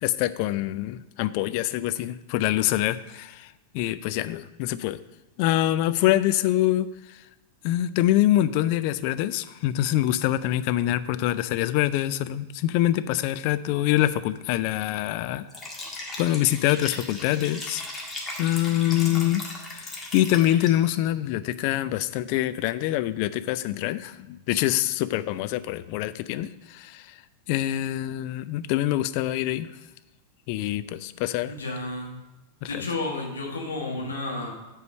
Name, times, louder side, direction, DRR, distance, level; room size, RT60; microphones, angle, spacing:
voice 1, 0.0-5.0 5.4-7.2 7.6-15.5 16.2-17.8 18.4-19.5 19.7-27.1 27.5-29.7 30.5-31.5 32.7-32.8, left 14 dB, 45° left, 13 dB, 0.3 m, -25 dB
Liquid, 15.5-21.0, left 2 dB, 15° left, 1.6 m, -37 dB
voice 2, 31.5-32.1 32.6-34.5, left 2 dB, 70° left, 0 dB, 1.4 m, -31 dB
8.0 x 4.6 x 6.4 m, 1.0 s
figure-of-eight pair, 90°, 0 cm